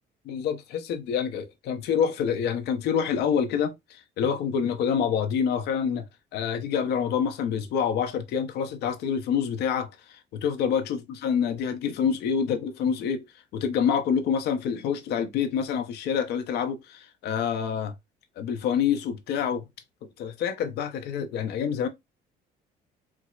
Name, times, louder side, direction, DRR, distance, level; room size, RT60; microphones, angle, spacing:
voice 1, 0.3-6.0 6.3-13.2 13.5-17.9 18.4-19.7 20.2-21.9, left 7 dB, 75° left, 0.6 m, -27 dB
4.5 x 2.0 x 2.3 m
cardioid pair, 110°, 17 cm